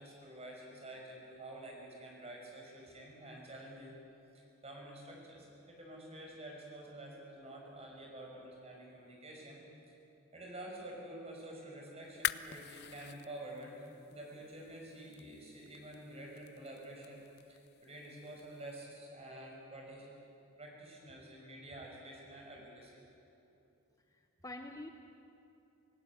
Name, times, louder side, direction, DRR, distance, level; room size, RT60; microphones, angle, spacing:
voice 1, 0.0-4.0 4.3-9.6 9.9-10.0 10.3-17.2 17.5-20.1 20.6-23.0, right 1 dB, 30° right, -1 dB, 5.6 m, -49 dB
sound 1, 12.0-18.8, left 12 dB, 50° left, 0.5 m, -45 dB
voice 2, 24.1-24.9, left 2 dB, 15° left, 5 dB, 0.8 m, -47 dB
25.0 x 16.5 x 9.6 m, 2.8 s
head